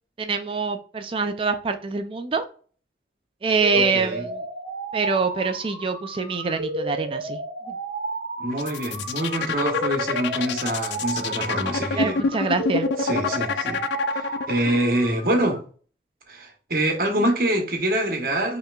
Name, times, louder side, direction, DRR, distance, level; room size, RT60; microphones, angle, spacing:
voice 1, 0.2-2.4 3.4-4.4 4.9-7.4 7.7-7.8 12.0-12.9, right 4 dB, 30° right, 0.4 m, -25 dB
sound 1, 3.6-15.6, right 2 dB, 85° right, 0.9 m, -33 dB
voice 2, 3.7-4.2 8.4-12.2 13.0-13.8 14.1-15.6 16.3-18.6, right 1 dB, 55° right, 1.0 m, -25 dB
sound 2, 8.5-14.8, left 5 dB, 80° left, 0.4 m, -26 dB
5.7 x 3.0 x 2.3 m
head